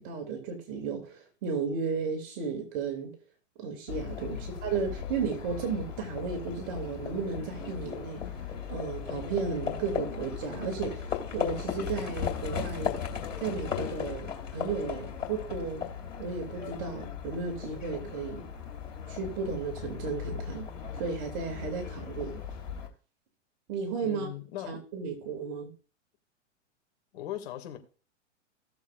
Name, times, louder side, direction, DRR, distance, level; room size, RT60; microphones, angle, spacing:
voice 1, 0.0-3.1 3.6-8.2 8.7-13.0 13.4-15.9 16.2-18.4 19.1-20.7 20.9-22.4 23.7-24.3 24.6-25.7, right 5 dB, 45° right, 2.6 m, -34 dB
Livestock farm animals working animals, 3.9-22.9, left 7 dB, 85° left, 2.9 m, -37 dB
voice 2, 24.0-24.8 27.1-27.8, left 11 dB, 60° left, 2.4 m, -39 dB
17.0 x 7.2 x 2.5 m
hypercardioid pair, 105°, 37 cm